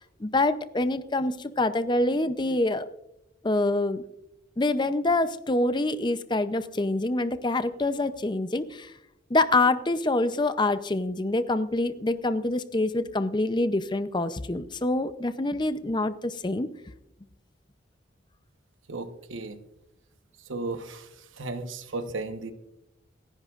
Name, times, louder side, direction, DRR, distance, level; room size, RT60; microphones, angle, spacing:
voice 1, 0.0-2.9 3.4-4.0 4.6-8.9 9.3-16.7, left 2 dB, 25° left, 12 dB, 0.6 m, -26 dB
voice 2, 18.9-19.6 20.5-21.1 21.4-22.5, right 3 dB, 85° right, 8 dB, 1.1 m, -34 dB
28.5 x 11.0 x 2.5 m, 0.86 s
head